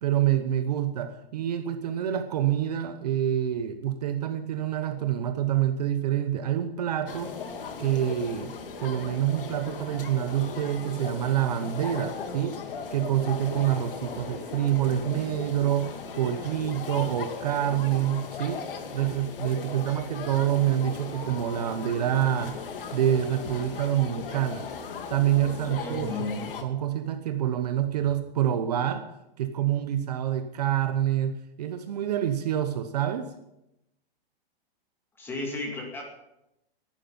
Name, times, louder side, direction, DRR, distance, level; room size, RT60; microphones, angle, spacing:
voice 1, 0.0-7.3 7.8-8.5 8.8-12.6 12.9-18.6 18.9-22.6 22.9-24.6 25.1-26.3 26.6-29.0 29.4-33.3, right 11 dB, 40° right, 8 dB, 1.0 m, -27 dB
sound 1, 7.1-26.6, left 5 dB, 60° left, 2.3 m, -38 dB
voice 2, 25.6-26.6 35.2-36.0, left 3 dB, 5° left, 0 dB, 2.3 m, -34 dB
19.0 x 11.5 x 5.4 m, 0.88 s
hypercardioid pair, 175°, 30 cm